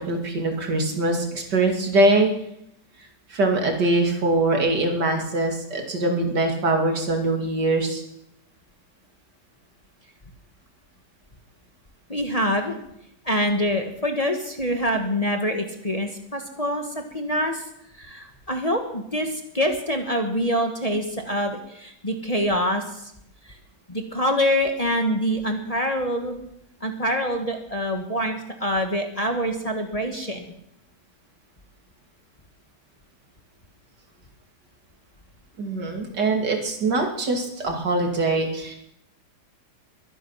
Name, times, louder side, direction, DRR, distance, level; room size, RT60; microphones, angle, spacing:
voice 1, 0.1-2.3 3.3-8.0 35.6-38.8, right 2 dB, 80° right, 2 dB, 3.2 m, -23 dB
voice 2, 12.1-12.7 13.2-16.8 17.1-17.6 18.0-23.0 23.9-26.4 26.8-30.4, equal, 20° left, 3 dB, 1.5 m, -25 dB
22.5 x 10.0 x 5.8 m, 0.76 s
omnidirectional pair, 1.8 m